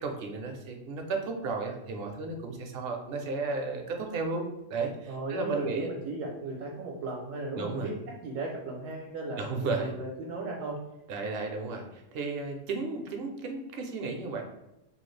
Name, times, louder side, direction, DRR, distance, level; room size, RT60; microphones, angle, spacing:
voice 1, 0.0-4.4 4.7-5.9 7.5-7.9 9.4-9.9 11.1-14.4, right 3 dB, 60° right, 3 dB, 0.7 m, -33 dB
voice 2, 5.1-10.8, right 2 dB, 80° right, -1 dB, 1.0 m, -36 dB
3.1 x 2.3 x 3.1 m, 0.90 s
omnidirectional pair, 1.3 m